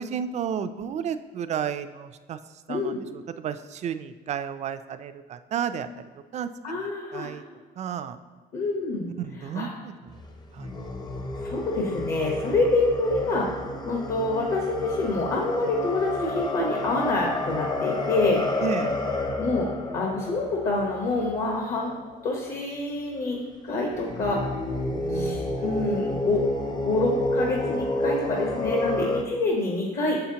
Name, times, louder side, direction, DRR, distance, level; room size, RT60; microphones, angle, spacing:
voice 1, 0.0-2.4 2.7-5.9 6.3-6.5 6.8-7.4 7.8-8.2 9.2-10.2 10.5-10.7 18.6-19.0 24.9-25.9, right 8 dB, 40° right, 11 dB, 0.4 m, -33 dB
voice 2, 6.6-7.3 8.5-9.1 9.5-9.7 11.4-13.5 13.8-18.9 19.4-21.9 22.2-23.4 23.6-24.4 25.1-26.4 26.7-30.2, left 2 dB, 55° left, -1 dB, 1.1 m, -27 dB
sound 1, 10.1-22.0 23.9-29.2, left 2 dB, 25° left, 0.6 m, -30 dB
6.7 x 5.7 x 2.8 m, 1.5 s
cardioid pair, 110°, 17 cm